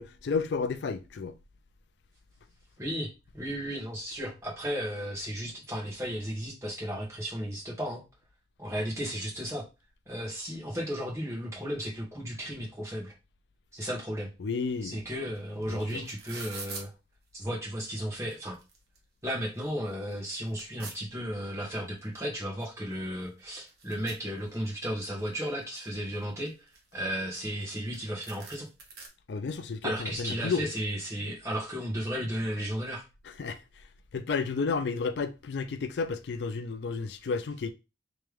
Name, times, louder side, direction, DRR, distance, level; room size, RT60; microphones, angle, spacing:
voice 1, 0.0-1.4 14.4-15.0 15.7-16.0 29.3-30.7 33.2-33.9 34.1-37.7, left 4 dB, 65° left, 0.4 m, -32 dB
voice 2, 2.8-8.0 8.6-9.6 10.1-13.1 13.7-14.3 14.8-16.9 17.3-18.6 19.2-26.5 26.9-28.7 29.8-33.0, equal, 15° right, 1.4 m, -34 dB
sound 1, 15.4-15.5 15.6-16.9 17.7-17.8 18.2-19.0 19.4-19.5 19.9-21.0 22.2-22.3 22.6-22.7 22.9-24.9 25.3-25.9 26.5-27.7 27.9-28.0 28.2-29.1, right 4 dB, 55° right, 1.0 m, -45 dB
3.3 x 3.2 x 3.4 m
head